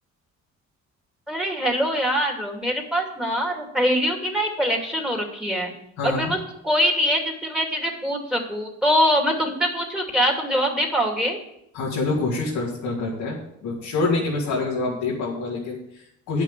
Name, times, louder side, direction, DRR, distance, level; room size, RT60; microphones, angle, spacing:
voice 1, 1.3-5.7 6.0-6.4 6.6-11.4, equal, ahead, 1 dB, 2.5 m, -23 dB
voice 2, 6.0-6.3 11.7-16.4, left 3 dB, 90° left, -5 dB, 2.3 m, -26 dB
9.2 x 6.1 x 7.5 m, 0.76 s
cardioid pair, 90°, 30 cm